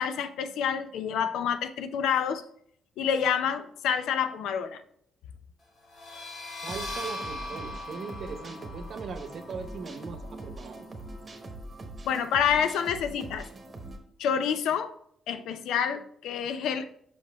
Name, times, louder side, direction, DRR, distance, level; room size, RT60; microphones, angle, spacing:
voice 1, 0.0-2.4 3.0-4.8 12.0-13.5 14.2-14.9 15.3-16.9, left 8 dB, 80° left, 11 dB, 0.5 m, -28 dB
sound 1, 5.8-11.3, left 1 dB, 55° left, 1.4 m, -41 dB
voice 2, 6.6-10.9, right 5 dB, 55° right, 7 dB, 0.9 m, -39 dB
sound 2, 6.7-14.0, right 2 dB, 35° right, 1.1 m, -43 dB
5.8 x 5.0 x 3.4 m, 0.68 s
cardioid pair, 90°, 0 cm